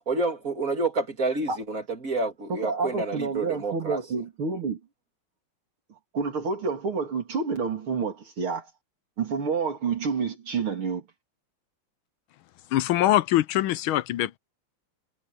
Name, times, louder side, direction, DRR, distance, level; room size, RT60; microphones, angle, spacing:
voice 1, 0.1-4.0, right 3 dB, 40° right, 3.3 m, -29 dB
voice 2, 2.5-4.8 6.1-8.7 9.2-11.0, right 5 dB, 75° right, 4.0 m, -29 dB
voice 3, 12.7-14.4, left 14 dB, 75° left, 1.4 m, -23 dB
omnidirectional pair, 2.4 m